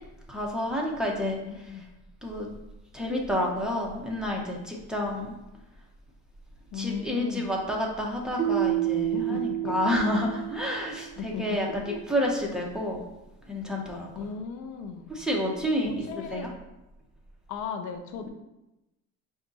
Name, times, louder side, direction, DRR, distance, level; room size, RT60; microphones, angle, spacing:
voice 1, 0.3-1.8 2.2-2.5 2.9-5.3 6.7-13.0 13.5-14.3 15.1-16.5, left 1 dB, ahead, -2 dB, 0.9 m, -30 dB
voice 2, 1.2-1.9 6.7-7.5 8.9-10.1 11.2-12.0 14.2-15.1 15.8-16.5 17.5-18.3, left 6 dB, 65° left, 6 dB, 0.5 m, -37 dB
Keyboard (musical), 8.4-11.2, right 13 dB, 25° right, 0.4 m, -29 dB
5.2 x 2.4 x 4.0 m, 0.97 s
cardioid pair, 110°, 33 cm